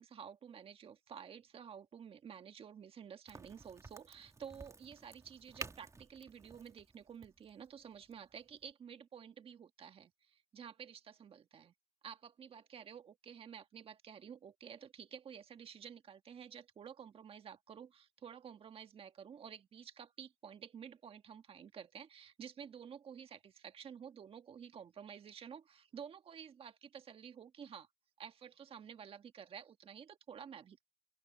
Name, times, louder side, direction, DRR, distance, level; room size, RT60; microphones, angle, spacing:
voice 1, 0.0-11.7 12.0-27.9 28.2-30.8, right 7 dB, 65° right, 1.6 m, -52 dB
Crack, 3.3-8.7, right 3 dB, 30° right, 2.2 m, -52 dB
open air
cardioid pair, 75°, 10 cm